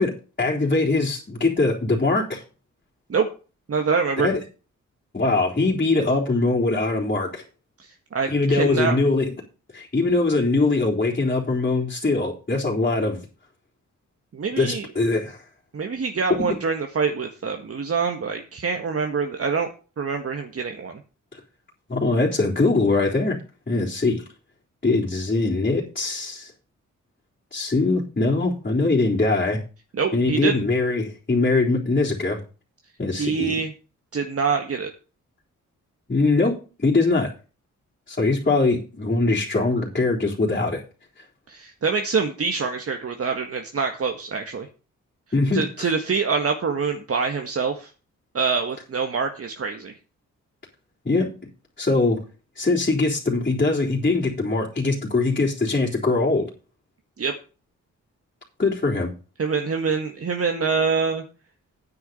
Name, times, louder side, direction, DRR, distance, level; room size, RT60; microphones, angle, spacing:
voice 1, 0.0-2.4 4.2-4.4 5.1-7.4 8.3-9.3 9.7-13.2 14.6-15.4 16.4-16.5 21.9-23.4 23.7-24.2 24.8-26.5 27.5-29.6 30.1-32.4 33.0-33.6 36.1-37.3 38.1-40.8 45.3-45.6 51.1-51.3 51.8-52.2 52.6-56.5 58.6-59.1, left 3 dB, 30° left, -6 dB, 3.8 m, -22 dB
voice 2, 3.7-4.3 7.8-9.0 14.3-14.9 15.7-19.7 20.0-21.0 29.9-30.6 33.1-33.7 34.1-34.9 41.5-44.7 45.5-47.9 48.3-49.9 57.2-57.3 59.4-61.2, right 5 dB, 50° right, 4 dB, 1.7 m, -25 dB
9.5 x 6.8 x 7.0 m, 0.34 s
cardioid pair, 65°, 31 cm